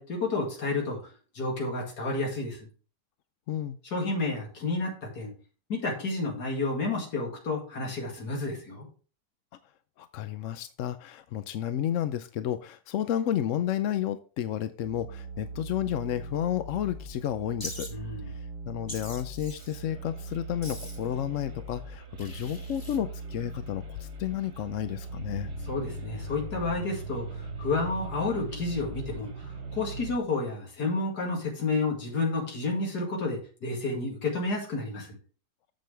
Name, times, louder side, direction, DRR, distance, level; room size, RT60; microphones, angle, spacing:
voice 1, 0.0-2.7 3.8-5.3 5.7-8.9 17.9-18.3 25.6-35.2, left 3 dB, 85° left, -1 dB, 2.8 m, -31 dB
voice 2, 3.5-3.8 10.0-17.9 18.3-25.5, left 11 dB, 65° left, 11 dB, 0.8 m, -31 dB
sound 1, 14.8-30.2, right 2 dB, 90° right, 2.0 m, -40 dB
Wild animals, 17.6-17.9 18.9-19.8 20.6-21.1 22.2-23.0, left 1 dB, 15° left, 2.0 m, -42 dB
9.2 x 7.6 x 3.3 m, 0.37 s
omnidirectional pair, 1.7 m